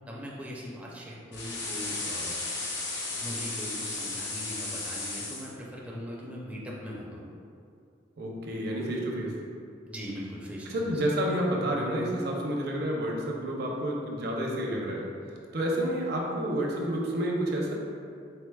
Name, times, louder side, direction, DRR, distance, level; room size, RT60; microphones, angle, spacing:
voice 1, 0.1-2.3 3.1-7.3 9.9-10.8, equal, 5° right, -5 dB, 0.4 m, -40 dB
sound 1, 1.3-5.5, left 3 dB, 65° left, 0.7 m, -34 dB
voice 2, 8.2-9.3 10.7-15.0 15.5-17.7, right 1 dB, 55° right, -1 dB, 0.6 m, -29 dB
4.5 x 3.9 x 2.3 m, 2.4 s
head